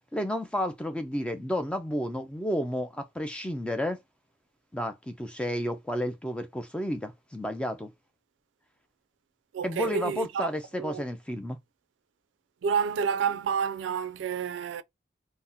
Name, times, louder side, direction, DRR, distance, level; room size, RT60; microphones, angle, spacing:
voice 1, 0.1-4.0 4.7-7.9 9.6-11.6, equal, 5° left, 0.3 m, -31 dB
voice 2, 9.5-10.5 10.7-11.0 12.6-14.8, right 6 dB, 80° right, 0.3 m, -29 dB
2.7 x 2.0 x 3.5 m
head